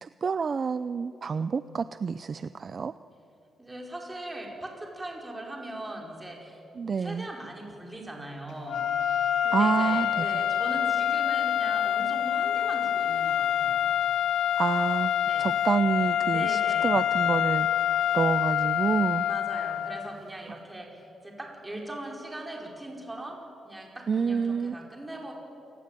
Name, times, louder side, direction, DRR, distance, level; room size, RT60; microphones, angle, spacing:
voice 1, 0.0-2.9 6.8-7.3 9.5-10.2 14.6-15.1 15.4-19.3 24.1-24.8, right 5 dB, 40° right, 13 dB, 0.5 m, -28 dB
voice 2, 3.6-6.6 7.0-13.8 15.3-15.5 16.3-17.0 19.2-23.4 23.6-25.3, right 1 dB, 10° right, 0 dB, 5.1 m, -40 dB
sound 1, 8.7-20.2, left 10 dB, 80° left, 1.4 m, -26 dB
28.0 x 20.0 x 9.1 m, 2.8 s
cardioid pair, 130°, 0 cm